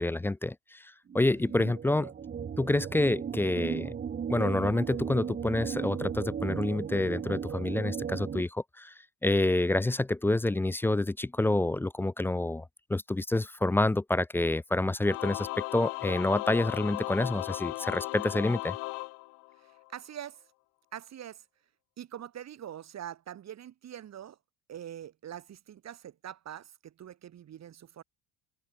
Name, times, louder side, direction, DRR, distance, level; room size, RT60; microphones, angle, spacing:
voice 1, 0.0-2.1 2.6-3.9 4.3-8.9 9.2-12.6 12.9-18.8, left 2 dB, 5° left, 0.3 m, -28 dB
sound 1, 1.1-8.4, right 7 dB, 25° right, 0.9 m, -36 dB
Singing / Musical instrument, 15.0-19.9, left 23 dB, 75° left, 3.5 m, -36 dB
voice 2, 19.6-20.4 20.9-21.4 22.0-24.4 24.7-28.0, right 10 dB, 40° right, 2.4 m, -44 dB
open air
cardioid pair, 135°, 41 cm